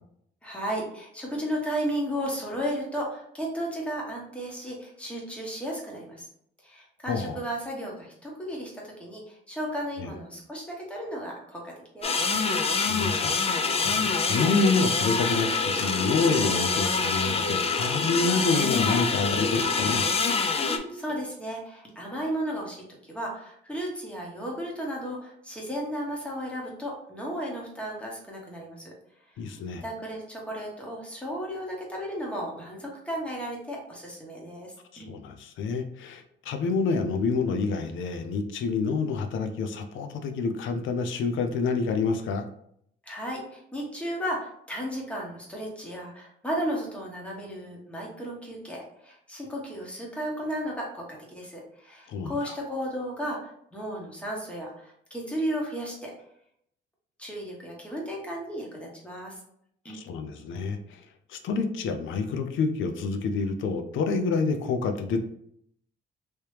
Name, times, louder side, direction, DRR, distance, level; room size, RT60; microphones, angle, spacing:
voice 1, 0.4-6.3 6.6-12.2 20.6-28.9 29.8-35.1 43.1-56.1 57.2-59.3 59.8-60.0, equal, 5° left, -3 dB, 1.3 m, -34 dB
voice 2, 7.1-7.4 10.0-10.1 12.9-13.4 13.8-20.0 29.4-29.8 34.9-42.5 52.1-52.6 59.9-61.0 61.3-65.2, left 4 dB, 75° left, 7 dB, 0.6 m, -28 dB
sound 1, 12.0-20.8, left 4 dB, 30° left, 0.5 m, -26 dB
3.2 x 2.9 x 3.2 m, 0.70 s
cardioid pair, 90°, 20 cm